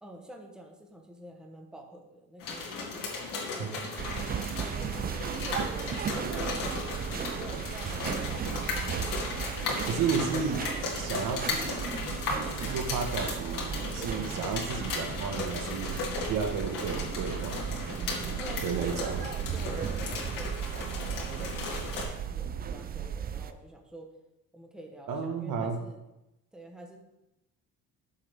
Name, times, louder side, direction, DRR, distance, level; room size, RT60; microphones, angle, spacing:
voice 1, 0.0-3.0 3.5-4.0 4.3-9.5 18.4-24.1 24.5-26.0 26.5-27.0, right 1 dB, ahead, 2 dB, 1.1 m, -47 dB
sound 1, 2.4-22.0, left 4 dB, 70° left, 2.4 m, -36 dB
sound 2, 4.0-23.5, right 8 dB, 30° right, 0.4 m, -35 dB
voice 2, 9.9-10.7 10.9-12.2 12.5-17.7 18.6-19.2 25.1-25.8, right 5 dB, 70° right, 4 dB, 1.5 m, -33 dB
12.5 x 7.3 x 3.6 m, 0.93 s
cardioid pair, 155°, 33 cm